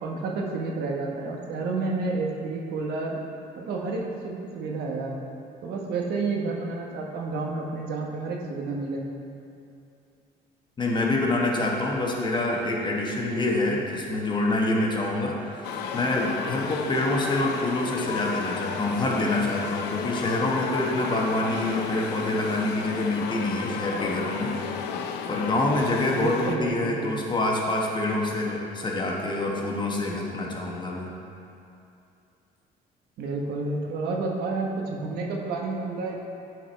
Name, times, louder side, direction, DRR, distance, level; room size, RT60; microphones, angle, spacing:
voice 1, 0.0-3.2 3.6-5.1 5.6-9.0 26.1-27.1 33.2-36.2, right 3 dB, 70° right, -1 dB, 1.1 m, -30 dB
voice 2, 10.8-24.5 25.3-31.1, left 2 dB, 25° left, -2 dB, 1.1 m, -26 dB
sound 1, 15.6-26.6, left 7 dB, 85° left, 0.5 m, -33 dB
9.7 x 4.6 x 4.1 m, 2.7 s
cardioid pair, 110°, 17 cm